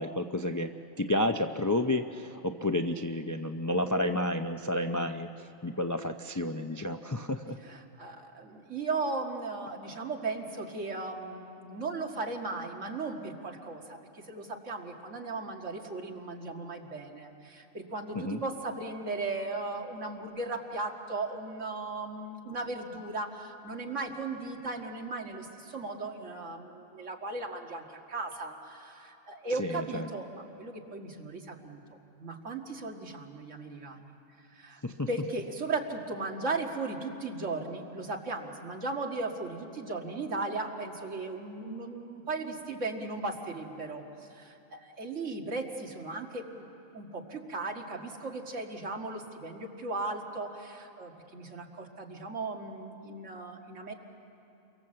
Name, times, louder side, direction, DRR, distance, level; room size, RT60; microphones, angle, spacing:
voice 1, 0.0-5.3 5.6-7.6 18.2-18.4 29.6-30.1 34.8-35.1, left 1 dB, 25° left, 6 dB, 0.4 m, -31 dB
voice 2, 7.6-31.8 32.2-34.2 34.5-34.8 35.1-46.7 46.9-53.9, right 3 dB, 65° right, 2 dB, 2.3 m, -37 dB
28.0 x 23.5 x 7.7 m, 2.9 s
omnidirectional pair, 1.4 m